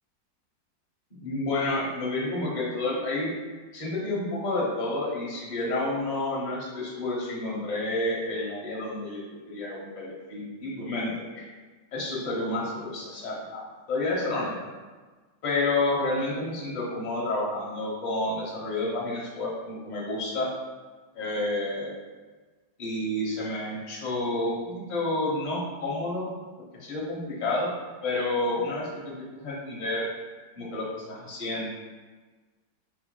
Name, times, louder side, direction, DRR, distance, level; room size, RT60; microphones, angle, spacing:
voice 1, 1.1-3.3 3.7-11.5 11.9-14.7 15.4-20.5 21.1-21.9 22.8-26.3 26.7-27.7 28.0-30.1 30.6-31.7, left 2 dB, 30° left, -5 dB, 0.9 m, -30 dB
4.8 x 4.7 x 2.2 m, 1.3 s
omnidirectional pair, 1.9 m